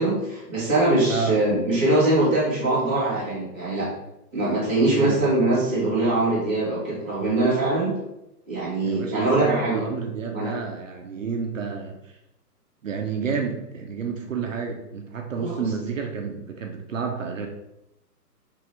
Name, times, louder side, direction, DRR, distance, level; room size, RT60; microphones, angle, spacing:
voice 1, 0.0-3.9 4.3-7.9 8.5-9.8 10.3-10.5 15.3-15.6, right 2 dB, 10° left, -18 dB, 0.6 m, -22 dB
voice 2, 8.8-12.2 12.8-17.5, right 5 dB, 55° right, 3 dB, 0.5 m, -30 dB
3.3 x 2.9 x 3.3 m, 0.89 s
hypercardioid pair, 165°, 48 cm